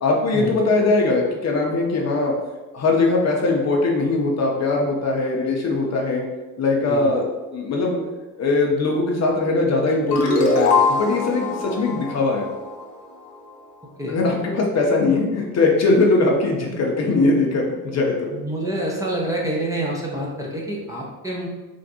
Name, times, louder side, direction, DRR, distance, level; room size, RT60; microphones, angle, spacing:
voice 1, 0.0-2.3 2.7-6.2 6.6-8.0 8.4-12.5 14.1-18.3, left 3 dB, 35° left, -1 dB, 0.9 m, -20 dB
sound 1, 10.1-13.3, left 3 dB, 75° left, 0.9 m, -22 dB
voice 2, 18.3-21.5, right 1 dB, 5° right, -4 dB, 0.8 m, -27 dB
3.6 x 2.5 x 4.0 m, 1.2 s
figure-of-eight pair, 60°, 48 cm